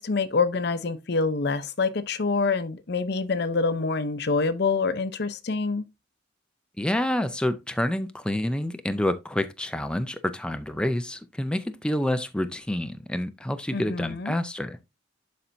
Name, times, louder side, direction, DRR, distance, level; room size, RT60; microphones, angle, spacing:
voice 1, 0.0-5.8 13.7-14.3, left 4 dB, 60° left, 0.7 m, -26 dB
voice 2, 6.8-14.8, left 1 dB, 5° left, 0.4 m, -28 dB
11.0 x 4.2 x 2.6 m
head